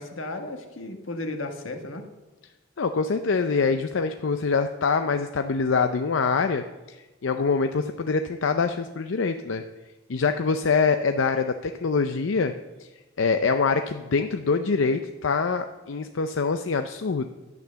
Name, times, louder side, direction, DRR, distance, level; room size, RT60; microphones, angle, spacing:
voice 1, 0.0-2.1, left 2 dB, 90° left, 5 dB, 1.5 m, -34 dB
voice 2, 2.8-7.0 7.2-9.6 10.1-12.5 12.8-12.9 13.2-17.3, left 4 dB, 70° left, 8 dB, 0.5 m, -24 dB
11.0 x 9.1 x 6.9 m, 1.1 s
head